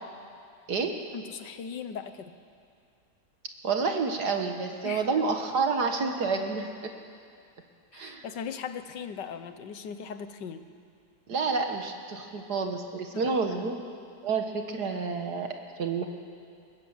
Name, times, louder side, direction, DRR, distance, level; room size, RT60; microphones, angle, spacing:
voice 1, 1.1-2.3 4.8-5.2 7.9-10.6 13.1-13.3, left 7 dB, 80° left, 10 dB, 1.7 m, -38 dB
voice 2, 3.6-6.9 7.9-8.2 11.3-13.9 14.2-15.5 15.8-16.1, right 4 dB, 70° right, 4 dB, 2.0 m, -29 dB
23.0 x 20.5 x 7.3 m, 2.3 s
omnidirectional pair, 1.9 m